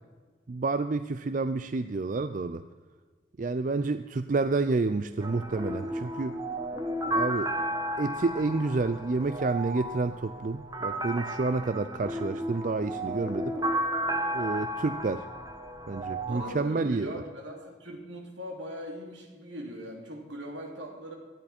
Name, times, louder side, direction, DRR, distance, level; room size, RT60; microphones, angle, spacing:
voice 1, 0.5-2.6 3.4-6.4 7.1-7.5 8.0-13.6 14.3-15.3 15.9-17.1, right 3 dB, 45° right, 11 dB, 0.4 m, -29 dB
sound 1, 5.2-16.5, right 1 dB, 20° right, 1.3 m, -33 dB
voice 2, 16.2-21.2, equal, 75° right, 1 dB, 3.2 m, -40 dB
18.0 x 13.0 x 4.3 m, 1.4 s
head